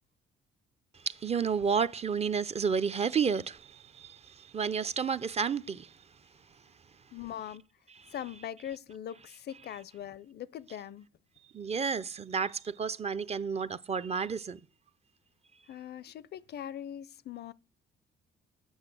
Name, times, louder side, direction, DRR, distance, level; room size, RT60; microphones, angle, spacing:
voice 1, 1.0-5.9 11.5-14.6, right 6 dB, 30° right, 0.5 m, -31 dB
voice 2, 7.1-7.7 8.1-11.1 15.7-17.5, left 10 dB, 55° left, 0.4 m, -41 dB
8.0 x 6.2 x 7.5 m
cardioid pair, 90°, 20 cm